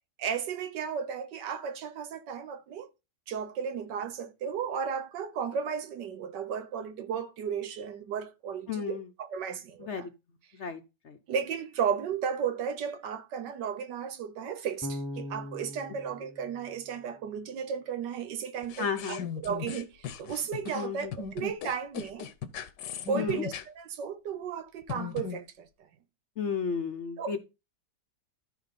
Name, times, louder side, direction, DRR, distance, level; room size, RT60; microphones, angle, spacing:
voice 1, 0.2-2.9 3.3-10.1 11.3-22.3 23.1-25.7 27.2-27.4, right 7 dB, 80° right, 1.6 m, -34 dB
voice 2, 8.7-9.1 9.8-10.1 10.5-11.2 18.8-19.2 20.7-21.1 23.1-23.4 26.4-27.4, left 6 dB, 50° left, 0.9 m, -33 dB
Bass guitar, 14.8-17.8, left 1 dB, 20° left, 0.5 m, -41 dB
sound 1, 18.6-23.6 24.8-25.4, left 7 dB, 80° left, 1.5 m, -38 dB
13.5 x 4.6 x 4.2 m
omnidirectional pair, 1.9 m